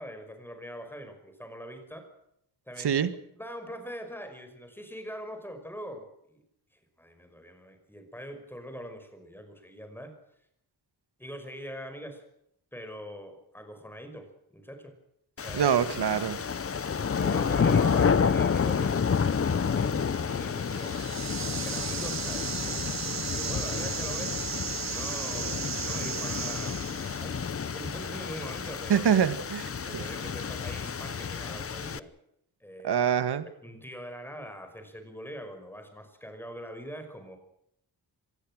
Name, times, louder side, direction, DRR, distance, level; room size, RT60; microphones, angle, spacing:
voice 1, 0.0-2.1 2.7-3.1 3.3-6.4 6.7-10.1 11.2-12.2 12.7-14.9 15.4-15.8 17.2-21.0 21.5-22.9 23.2-24.3 24.9-29.1 29.8-32.1 32.6-33.0 33.6-37.4, equal, 5° left, 6 dB, 5.7 m, -42 dB
voice 2, 2.8-3.1 15.5-16.4 28.9-29.7 29.9-30.0 32.8-33.5, right 8 dB, 80° right, 12 dB, 1.9 m, -25 dB
sound 1, 15.4-32.0, left 6 dB, 35° left, 0.9 m, -30 dB
sound 2, 20.6-27.3, right 8 dB, 45° right, 0.8 m, -35 dB
25.5 x 20.0 x 6.3 m, 0.75 s
wide cardioid pair, 145°, 39 cm